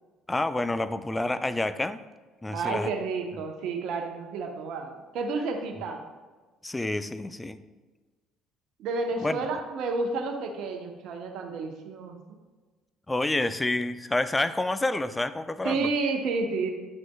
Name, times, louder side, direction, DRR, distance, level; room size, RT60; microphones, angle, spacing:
voice 1, 0.3-2.0 2.4-2.9 6.6-7.6 9.2-9.4 13.1-15.9, left 2 dB, 15° left, 13 dB, 0.5 m, -28 dB
voice 2, 2.5-6.0 8.8-12.4 15.6-16.7, right 3 dB, 65° right, 3 dB, 0.9 m, -30 dB
9.2 x 6.1 x 2.3 m, 1.3 s
hypercardioid pair, 55°, 0 cm